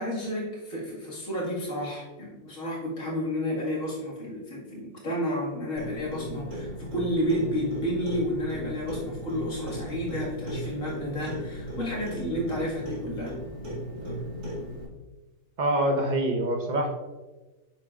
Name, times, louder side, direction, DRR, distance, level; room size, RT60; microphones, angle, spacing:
voice 1, 0.0-13.4, equal, 55° left, -6 dB, 2.4 m, -31 dB
Clock, 5.8-14.8, right 1 dB, 80° right, 2.9 m, -37 dB
voice 2, 15.6-16.9, right 1 dB, 35° right, 2 dB, 1.0 m, -25 dB
8.3 x 6.7 x 2.5 m, 1.2 s
omnidirectional pair, 1.6 m